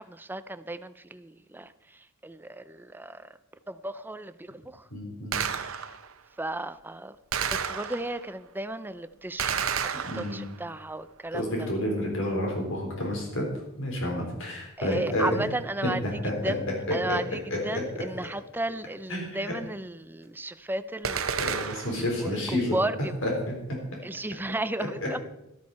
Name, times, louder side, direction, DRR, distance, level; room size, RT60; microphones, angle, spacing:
voice 1, 0.0-3.4 3.7-4.8 5.6-5.9 6.4-7.1 7.5-9.9 10.1-11.7 14.8-16.0 16.4-21.7 22.2-23.1 24.0-25.2, right 2 dB, 10° right, 13 dB, 0.5 m, -34 dB
voice 2, 4.9-5.4 10.0-10.4 11.3-13.4 13.8-15.5 16.0-16.3 17.1-17.2 17.7-17.8 19.1-19.5 21.4-22.8 23.2-23.5, left 1 dB, 65° left, 0 dB, 4.0 m, -30 dB
Gunshot gunfire, 5.3-6.1 7.3-8.3 9.4-10.7 21.0-22.1, right 7 dB, 70° right, 0.9 m, -31 dB
13.0 x 12.5 x 4.2 m, 0.86 s
head